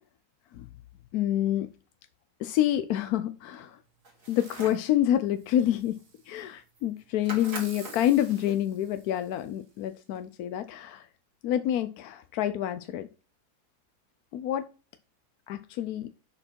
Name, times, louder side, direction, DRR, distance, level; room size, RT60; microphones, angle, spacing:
voice 1, 1.1-1.7 2.4-3.8 4.3-6.0 6.3-11.1 11.4-13.1 14.3-14.7 15.5-16.1, left 11 dB, 75° left, 10 dB, 1.1 m, -27 dB
sound 1, 4.0-4.9 6.4-6.5 6.7-7.0 7.3-8.7, right 2 dB, 85° right, 2.9 m, -43 dB
Fireworks, 4.2-4.9 5.4-6.4 7.2-9.6 10.2-10.3, right 4 dB, 50° right, 1.8 m, -51 dB
6.5 x 6.1 x 4.4 m, 0.35 s
omnidirectional pair, 1.6 m